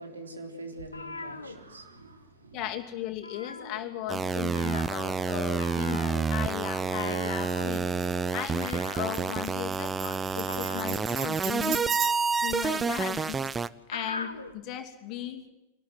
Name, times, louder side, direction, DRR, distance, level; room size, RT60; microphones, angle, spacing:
voice 1, 0.0-2.6, right 2 dB, 75° right, 3.9 m, -44 dB
sound 1, 0.8-2.3 2.5-2.8 3.1-4.2 4.5-14.6, left 3 dB, 80° left, 1.7 m, -42 dB
voice 2, 2.5-7.8 8.3-11.8 12.4-13.4 13.9-15.4, left 12 dB, 40° left, 2.7 m, -37 dB
sound 2, 4.1-13.7, right 5 dB, 15° right, 0.7 m, -29 dB
Tambourine, 7.4-12.5, right 9 dB, 35° right, 2.1 m, -37 dB
24.5 x 19.5 x 7.8 m
figure-of-eight pair, 90°, 0 cm